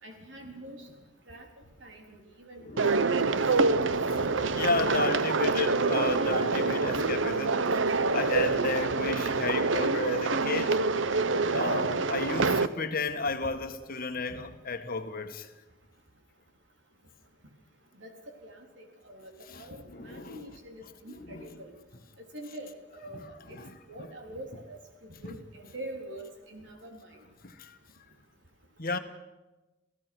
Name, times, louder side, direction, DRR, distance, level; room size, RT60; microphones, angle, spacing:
voice 1, 0.0-0.9 1.3-1.5 1.8-2.6 3.1-3.3 4.1-4.3 6.1-6.2 6.8-6.9 8.9-9.0 12.3-12.4 14.3-14.4 18.0-18.1 18.4-21.7 22.3-23.6 23.9-24.8 25.2-27.0, right 1 dB, 70° right, 3.9 m, -45 dB
voice 2, 2.6-3.2 4.3-7.8 8.1-10.8 11.5-15.5 19.5-20.5 21.1-21.6 23.1-23.2 23.5-23.8 25.2-25.3 27.4-27.8 28.8-29.0, left 3 dB, 50° left, 1.6 m, -33 dB
sound 1, 2.8-12.7, right 3 dB, 85° right, 0.9 m, -26 dB
28.5 x 16.5 x 6.2 m
head